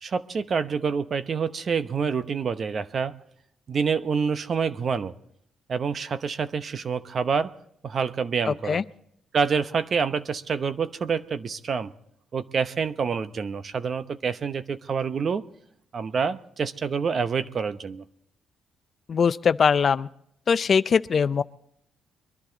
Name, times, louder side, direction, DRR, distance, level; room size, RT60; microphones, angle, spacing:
voice 1, 0.0-3.2 3.7-5.1 5.7-7.5 7.8-8.8 9.3-11.9 12.3-15.4 15.9-18.0, right 5 dB, 45° right, 12 dB, 0.9 m, -27 dB
voice 2, 8.5-8.8 19.1-20.1 20.5-21.4, left 6 dB, 45° left, 15 dB, 0.5 m, -21 dB
22.5 x 11.5 x 4.0 m, 0.71 s
cardioid pair, 90°, 0 cm